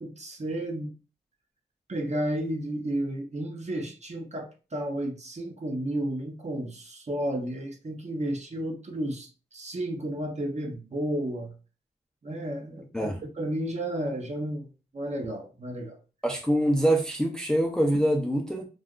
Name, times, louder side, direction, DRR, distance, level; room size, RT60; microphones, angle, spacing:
voice 1, 0.0-0.9 1.9-11.5 12.2-14.7 14.9-16.0, right 1 dB, 40° right, 2 dB, 0.8 m, -32 dB
voice 2, 16.2-18.7, right 1 dB, 5° left, 1 dB, 0.6 m, -24 dB
2.5 x 2.2 x 3.6 m, 0.33 s
cardioid pair, 70°, 19 cm